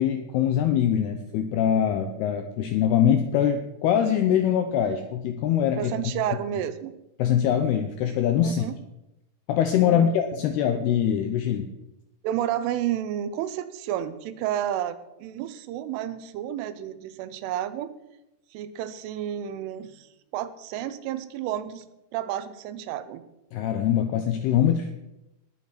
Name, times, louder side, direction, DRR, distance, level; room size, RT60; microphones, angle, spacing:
voice 1, 0.0-5.9 7.2-8.7 9.5-11.7 23.5-24.9, left 9 dB, 85° left, 7 dB, 2.3 m, -23 dB
voice 2, 5.8-6.9 8.4-8.8 9.8-10.1 12.2-17.9 18.5-21.9 22.1-23.2 24.0-24.1, right 11 dB, 90° right, 13 dB, 3.4 m, -31 dB
19.5 x 7.5 x 6.0 m, 0.91 s
omnidirectional pair, 5.6 m